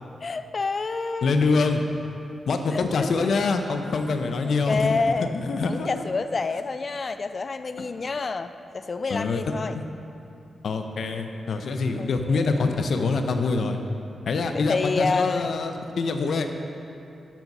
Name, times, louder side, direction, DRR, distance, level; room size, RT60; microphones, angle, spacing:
voice 1, 0.2-1.3 2.7-3.3 4.4-5.3 5.6-9.8 12.0-12.7 14.5-15.5, left 4 dB, 45° left, 11 dB, 0.3 m, -28 dB
voice 2, 1.2-1.8 2.5-6.0 9.1-9.4 9.7-9.8 10.6-13.8 14.3-16.5, left 4 dB, 70° left, 6 dB, 0.7 m, -25 dB
12.0 x 4.0 x 5.9 m, 2.7 s
cardioid pair, 70°, 0 cm